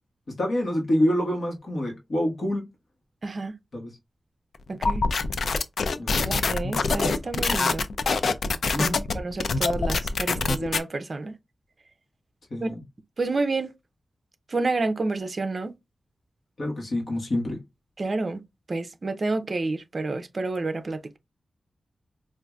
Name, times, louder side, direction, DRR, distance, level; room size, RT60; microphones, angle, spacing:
voice 1, 0.4-2.6 3.7-3.9 6.0-6.3 8.7-9.0 12.5-12.8 16.6-17.6, left 1 dB, 55° left, 1.3 m, -26 dB
voice 2, 3.2-3.5 4.7-5.0 6.1-7.9 8.8-11.3 12.6-12.7 13.2-13.7 14.5-15.7 18.0-18.4 18.7-21.2, right 3 dB, 40° right, 0.5 m, -29 dB
sound 1, 4.8-10.8, left 4 dB, 75° left, 0.4 m, -25 dB
4.6 x 2.5 x 2.3 m
wide cardioid pair, 165°, 0 cm